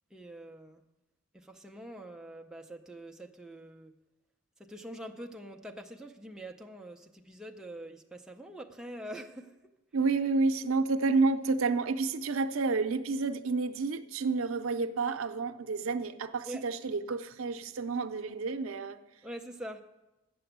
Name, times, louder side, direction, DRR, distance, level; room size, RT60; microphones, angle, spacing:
voice 1, 0.1-0.8 1.3-3.9 4.6-9.5 16.4-16.6 19.2-19.8, right 1 dB, 5° right, 0.5 m, -44 dB
voice 2, 9.9-19.0, right 4 dB, 85° right, 0.6 m, -30 dB
9.1 x 6.8 x 7.9 m
head